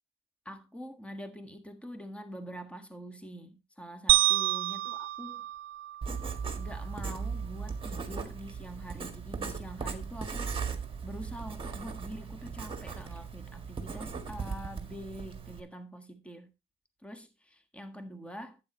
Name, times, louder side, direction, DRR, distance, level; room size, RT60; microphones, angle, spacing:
voice 1, 0.4-5.5 6.6-10.5 11.0-16.5 17.0-18.6, equal, 5° left, 1.5 m, -45 dB
sound 1, 4.1-6.5, right 17 dB, 80° right, 0.4 m, -28 dB
Writing, 6.0-15.6, right 5 dB, 25° right, 1.9 m, -38 dB
11.5 x 8.9 x 3.0 m
cardioid pair, 90°, 20 cm